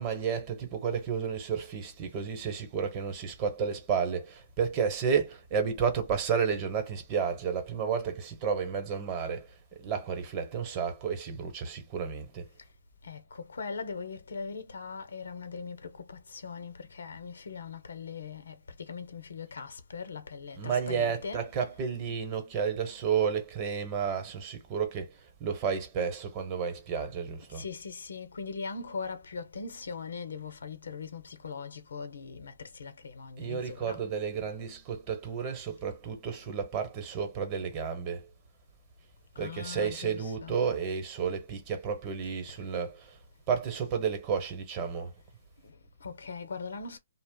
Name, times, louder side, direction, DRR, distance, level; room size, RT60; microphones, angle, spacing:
voice 1, 0.0-12.5 20.5-25.1 25.4-27.6 33.4-38.3 39.4-43.2 43.5-45.1, right 6 dB, 30° right, 0.9 m, -31 dB
voice 2, 13.0-21.7 27.5-34.0 39.3-40.6 41.2-41.3 42.4-42.6 45.6-47.0, left 5 dB, 80° left, 0.8 m, -41 dB
2.5 x 2.0 x 3.6 m
hypercardioid pair, 145°, 0 cm